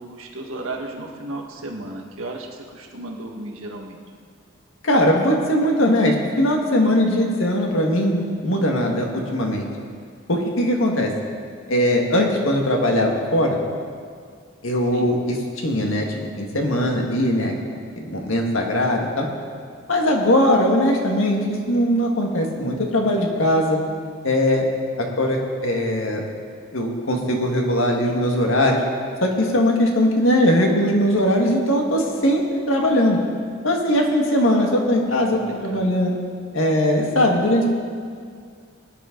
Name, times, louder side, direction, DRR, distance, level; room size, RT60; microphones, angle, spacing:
voice 1, 0.0-4.0 14.9-15.1 35.1-35.9, right 2 dB, 85° right, 1 dB, 1.6 m, -34 dB
voice 2, 4.8-9.7 10.3-11.1 11.7-13.6 14.6-15.4 15.6-17.5 18.0-19.3 19.9-23.8 24.2-24.7 25.0-26.2 26.7-28.8 29.2-33.2 33.6-36.2 36.5-37.7, left 1 dB, 75° left, 1 dB, 1.8 m, -20 dB
19.5 x 10.5 x 3.9 m, 2.1 s
head